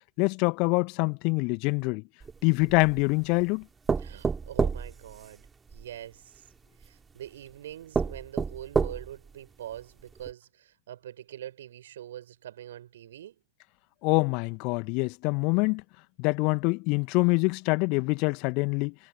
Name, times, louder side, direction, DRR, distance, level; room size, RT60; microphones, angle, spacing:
voice 1, 0.2-2.0 2.4-3.6 14.0-15.8 16.2-18.9, left 31 dB, 45° left, 2.3 m, -25 dB
sound 1, 2.2-3.1 3.9-5.8 6.8-6.9 7.5-7.6 7.9-9.3 9.8-9.9 10.2-10.3, right 5 dB, 15° right, 3.2 m, -29 dB
voice 2, 4.0-5.4 5.7-6.4 6.8-13.4, right 11 dB, 60° right, 7.4 m, -44 dB
figure-of-eight pair, 90°, 0 cm